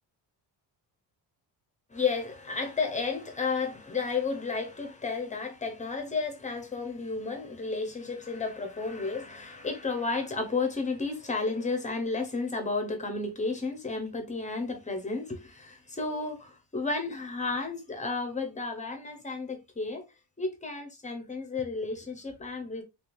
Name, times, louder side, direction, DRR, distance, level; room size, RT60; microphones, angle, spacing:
voice 1, 1.9-20.1 20.4-22.8, left 4 dB, 20° left, 0.6 m, -32 dB
3.4 x 3.1 x 2.5 m
cardioid pair, 170°, 40 cm